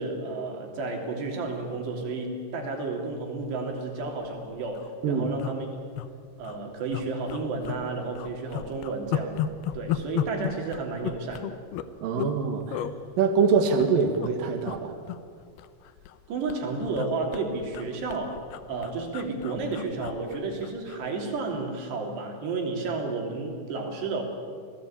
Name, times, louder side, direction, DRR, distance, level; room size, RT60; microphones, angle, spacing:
voice 1, 0.0-5.7 6.4-9.4 9.7-11.6 16.3-18.4 18.7-24.2, right 3 dB, 80° right, 2 dB, 5.3 m, -32 dB
sound 1, 3.9-4.1 4.4-4.5 4.7-4.9 5.4-6.1 6.4-6.6 6.9-7.8 8.2-12.4 12.7-12.9 13.6-14.3 14.6-14.8 15.1-16.2 16.5-21.0 21.4-21.6, left 10 dB, 75° left, 2.7 m, -34 dB
voice 2, 12.0-12.8 13.2-14.9, right 5 dB, 60° right, 4 dB, 3.2 m, -24 dB
28.0 x 18.5 x 8.9 m, 2.2 s
omnidirectional pair, 4.8 m